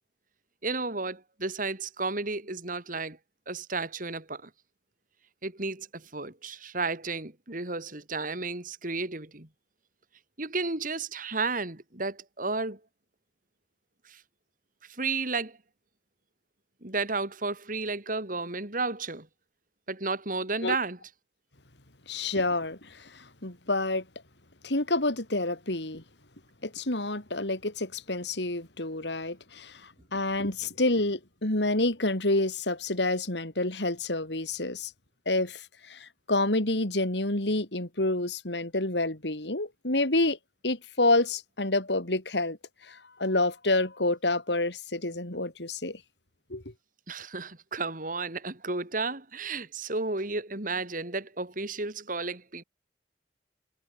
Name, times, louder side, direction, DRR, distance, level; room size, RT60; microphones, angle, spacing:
voice 1, 0.6-3.2 3.5-4.5 5.4-9.5 10.4-12.8 14.1-14.2 14.9-15.6 16.8-19.3 19.9-21.0 47.1-52.6, right 3 dB, 50° right, 3.4 m, -32 dB
voice 2, 22.1-24.0 24.6-26.0 26.6-29.8 30.1-34.9 35.3-40.4 40.6-42.6 42.9-46.0 46.5-46.6, left 2 dB, 75° left, 3.9 m, -28 dB
head